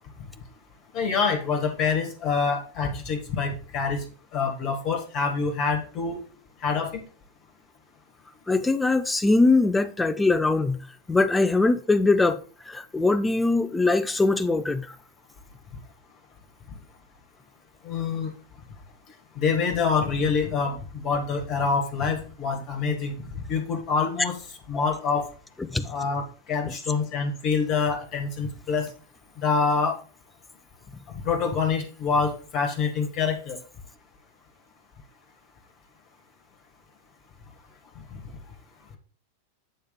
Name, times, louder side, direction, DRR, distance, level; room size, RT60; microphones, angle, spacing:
voice 1, 0.9-4.0 4.3-6.2 6.6-7.0 17.8-18.3 19.4-23.1 23.5-24.4 24.7-25.3 25.9-26.2 26.5-28.9 29.4-29.9 31.2-33.6, left 5 dB, 35° left, 1.8 m, -26 dB
voice 2, 8.5-10.8 11.1-12.4 12.7-14.9 25.7-25.8, left 3 dB, 10° left, 0.6 m, -21 dB
8.6 x 3.5 x 5.2 m
figure-of-eight pair, 90°, 0 cm